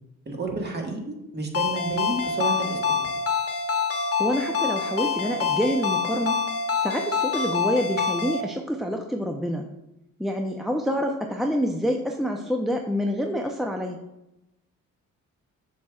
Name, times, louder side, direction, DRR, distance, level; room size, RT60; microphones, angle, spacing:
voice 1, 0.2-3.1, right 3 dB, 35° right, 1 dB, 1.6 m, -31 dB
Ringtone, 1.5-8.4, left 6 dB, 50° left, 1.1 m, -26 dB
voice 2, 4.2-6.4 6.8-9.7 10.2-14.0, equal, ahead, 3 dB, 0.5 m, -27 dB
7.0 x 6.3 x 2.3 m, 0.90 s
cardioid pair, 90°, 30 cm